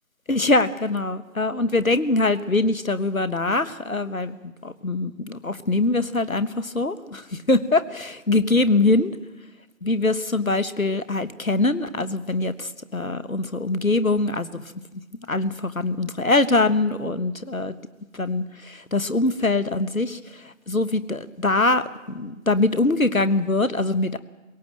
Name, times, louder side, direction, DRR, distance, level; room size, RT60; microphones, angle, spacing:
voice 1, 0.3-9.2 9.8-14.6 15.3-17.7 18.1-24.2, left 2 dB, 70° left, 13 dB, 1.3 m, -23 dB
22.0 x 17.5 x 7.6 m, 1.1 s
figure-of-eight pair, 175°, 42 cm